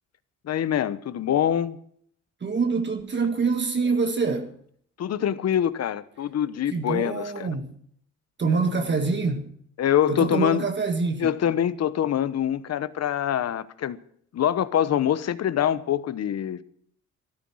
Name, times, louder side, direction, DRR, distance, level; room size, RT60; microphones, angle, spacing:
voice 1, 0.4-1.8 5.0-7.5 9.8-10.6 11.2-14.0 14.3-16.6, left 10 dB, 55° left, 1.0 m, -24 dB
voice 2, 2.4-4.6 6.7-7.8 8.4-9.5 10.1-11.5, right 4 dB, 35° right, 1.7 m, -25 dB
13.5 x 12.5 x 6.3 m
cardioid pair, 90°, 30 cm